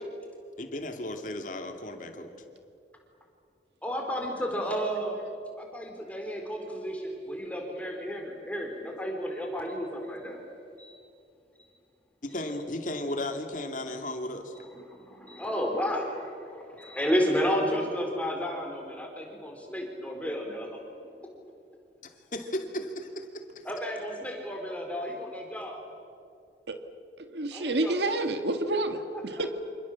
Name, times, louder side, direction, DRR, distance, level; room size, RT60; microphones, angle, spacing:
voice 1, 0.6-2.3 12.2-14.5 22.0-23.7, left 1 dB, 45° left, 5 dB, 2.7 m, -35 dB
voice 2, 3.8-5.2 5.6-10.4 10.8-10.9 14.8-20.7 23.6-25.8 27.5-27.9 29.4-29.5, equal, 10° left, 1 dB, 4.0 m, -32 dB
voice 3, 27.2-29.5, right 2 dB, 75° right, 7 dB, 1.9 m, -29 dB
28.0 x 27.5 x 7.4 m, 2.5 s
head